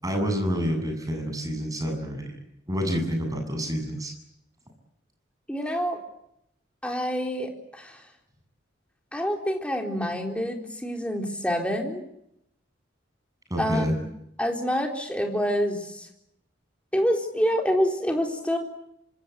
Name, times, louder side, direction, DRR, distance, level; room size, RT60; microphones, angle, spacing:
voice 1, 0.0-2.4 2.7-4.1 13.5-13.9, equal, 20° right, 4 dB, 7.9 m, -28 dB
voice 2, 5.5-6.0 6.8-8.0 9.1-12.0 13.6-13.8 14.4-16.1 16.9-18.6, equal, 5° left, 2 dB, 4.0 m, -27 dB
27.0 x 26.0 x 8.2 m, 0.79 s
head